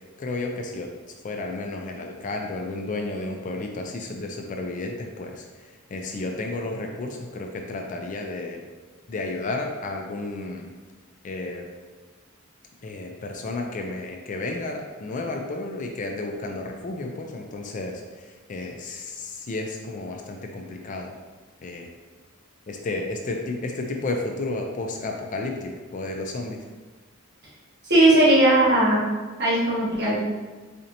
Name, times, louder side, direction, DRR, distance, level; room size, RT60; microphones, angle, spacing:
voice 1, 0.2-0.9 1.2-8.6 9.1-10.7 11.2-11.7 12.8-21.1 21.6-21.9 22.7-26.6, left 2 dB, 35° left, 2 dB, 0.3 m, -32 dB
voice 2, 27.9-29.1 29.4-30.2, right 1 dB, 50° right, -7 dB, 1.2 m, -18 dB
4.2 x 2.7 x 2.5 m, 1.3 s
head